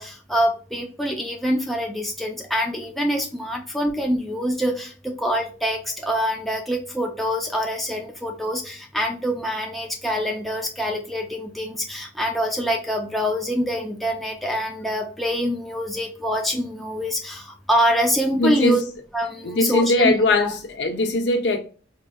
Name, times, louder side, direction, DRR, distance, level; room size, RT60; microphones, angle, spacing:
voice 1, 0.0-18.8 19.1-20.1 20.4-20.5, equal, ahead, 0.4 m, -25 dB
voice 2, 18.4-18.8 19.4-21.6, left 2 dB, 65° left, 0.7 m, -20 dB
3.6 x 2.5 x 2.2 m
head